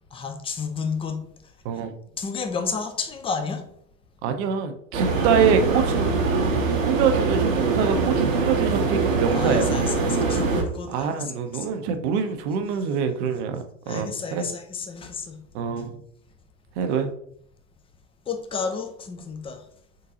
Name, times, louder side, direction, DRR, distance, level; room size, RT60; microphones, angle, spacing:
voice 1, 0.1-1.2 1.7-1.8 2.2-3.6 9.3-11.7 13.9-15.4 18.3-19.6, left 5 dB, 15° left, 0.5 m, -31 dB
voice 2, 4.2-6.1 6.8-9.8 10.9-14.5 15.5-15.9 16.8-17.1, right 7 dB, 60° right, 0.7 m, -25 dB
sound 1, 4.9-10.6, right 4 dB, 85° right, 0.9 m, -23 dB
3.8 x 3.7 x 2.7 m
hypercardioid pair, 80°, 39 cm